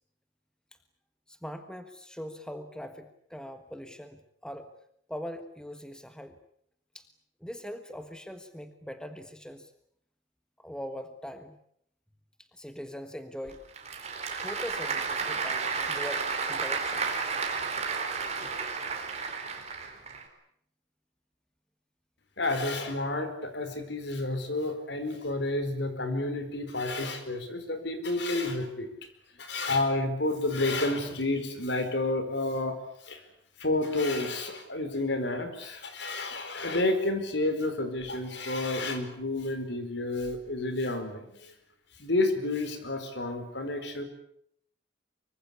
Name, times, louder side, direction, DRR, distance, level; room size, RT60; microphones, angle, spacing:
voice 1, 1.3-4.7 5.1-6.3 6.9-7.1 7.4-9.7 10.6-11.6 12.4-13.6 14.3-17.2, equal, 5° left, 8 dB, 1.5 m, -41 dB
Applause / Crowd, 13.5-20.2, right 5 dB, 35° right, 4.3 m, -32 dB
voice 2, 22.4-28.9 29.4-32.8 33.0-33.2 33.6-41.5 42.0-44.0, left 2 dB, 60° left, 9 dB, 4.7 m, -30 dB
24.5 x 24.0 x 8.4 m, 0.69 s
head